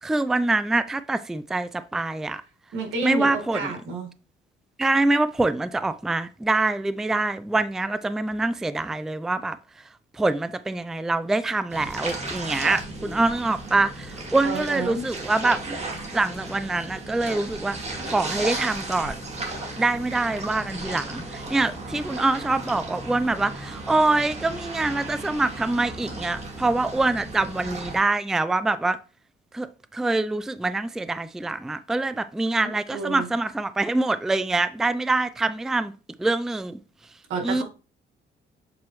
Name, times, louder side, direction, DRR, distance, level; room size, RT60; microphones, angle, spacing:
voice 1, 0.0-2.4 3.0-3.7 4.8-9.6 10.2-15.6 16.1-17.8 18.1-19.2 19.8-29.0 29.5-35.9 36.2-36.8 37.4-37.6, right 2 dB, ahead, 0.3 m, -25 dB
voice 2, 2.7-4.1 14.4-15.0 32.9-33.3 37.3-37.6, right 3 dB, 85° right, 1.7 m, -30 dB
sound 1, 11.7-28.0, right 2 dB, 35° right, 2.0 m, -35 dB
7.5 x 4.3 x 3.0 m
cardioid pair, 90°, 20 cm